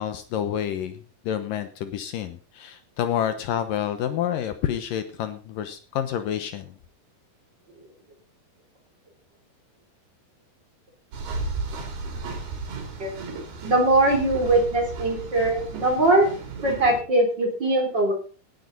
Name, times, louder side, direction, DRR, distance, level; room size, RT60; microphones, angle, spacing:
voice 1, 0.0-6.7, left 10 dB, 70° left, 9 dB, 2.5 m, -28 dB
sound 1, 11.1-17.0, right 3 dB, 90° right, 5.2 m, -34 dB
voice 2, 13.6-16.3 16.6-18.1, right 2 dB, 30° right, 2 dB, 3.6 m, -21 dB
17.5 x 11.5 x 4.1 m, 0.37 s
omnidirectional pair, 4.3 m